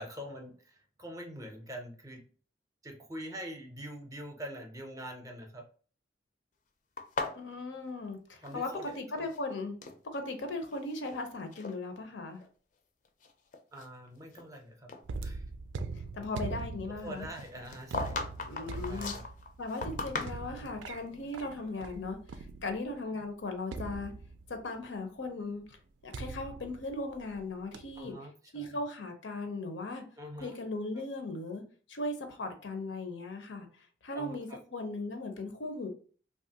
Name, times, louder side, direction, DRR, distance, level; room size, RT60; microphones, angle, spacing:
voice 1, 0.0-2.2 2.8-5.6 8.4-9.3 13.7-14.9 15.2-15.4 17.0-18.3 18.6-19.2 20.5-20.8 28.0-28.7 30.2-30.5 34.1-34.4, equal, 20° right, 0.5 m, -44 dB
sound 1, 7.0-9.0 9.2-10.0 10.6-11.2 11.5-11.7 12.4-12.5 13.0-14.6 14.9-15.0 17.3-20.7, left 3 dB, 45° left, 0.4 m, -39 dB
voice 2, 7.4-9.7 10.0-12.4 15.9-17.3 18.5-19.1 19.6-24.1 24.5-25.8 26.0-28.1 28.5-30.0 30.4-31.6 31.9-33.7 34.0-35.9, left 2 dB, 90° left, 0.6 m, -38 dB
sound 2, 15.0-23.0 23.7-24.7 26.1-27.4 27.7-28.1, right 3 dB, 85° right, 0.3 m, -42 dB
2.9 x 2.3 x 2.7 m
head